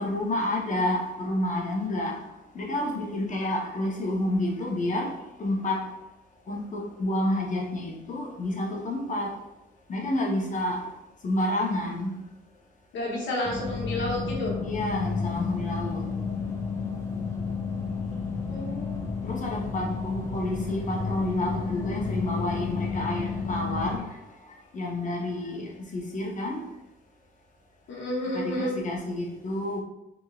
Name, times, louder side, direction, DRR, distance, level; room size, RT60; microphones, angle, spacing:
voice 1, 0.0-2.2 2.5-5.8 6.5-9.3 9.9-10.8 11.2-12.1 14.6-16.1 19.2-24.2 24.7-26.6 28.3-29.8, left 1 dB, 40° left, 0.8 m, -29 dB
voice 2, 12.9-14.6 18.5-19.1 27.9-28.7, left 1 dB, 70° left, 1.0 m, -30 dB
sound 1, 13.5-24.0, left 5 dB, 15° left, 0.4 m, -31 dB
2.9 x 2.6 x 2.3 m
cardioid pair, 90°, 20 cm